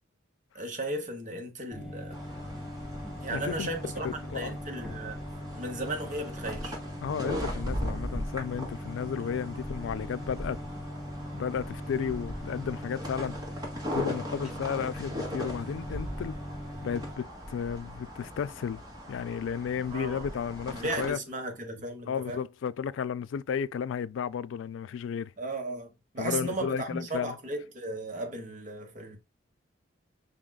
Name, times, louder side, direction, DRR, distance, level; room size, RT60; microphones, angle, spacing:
voice 1, 0.5-2.2 3.2-5.2 5.5-6.8 19.9-20.3 20.7-22.4 25.4-25.9 26.1-29.2, right 2 dB, 40° right, 1.1 m, -35 dB
sound 1, 1.7-17.2, left 1 dB, 5° right, 1.0 m, -40 dB
sound 2, 2.1-21.1, equal, 20° right, 1.5 m, -39 dB
voice 2, 3.3-3.7 4.3-4.6 7.0-10.6 11.3-13.3 13.9-16.4 16.8-18.8 19.1-21.2 22.1-25.3 26.2-27.4, left 7 dB, 80° left, 0.3 m, -33 dB
5.3 x 3.7 x 2.2 m
head